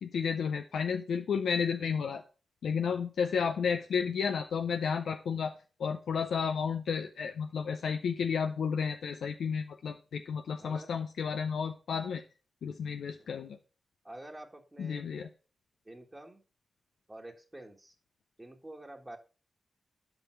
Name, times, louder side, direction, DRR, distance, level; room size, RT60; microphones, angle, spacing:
voice 1, 0.0-2.2 2.6-5.5 5.8-12.2 12.6-13.6 14.8-15.3, left 6 dB, 80° left, 5 dB, 0.5 m, -32 dB
voice 2, 10.6-10.9 13.2-13.5 14.0-15.0 15.9-16.4 17.1-17.9 18.4-19.2, right 1 dB, 25° right, 1 dB, 1.8 m, -48 dB
7.1 x 5.3 x 4.5 m, 0.34 s
supercardioid pair, 40°, 0 cm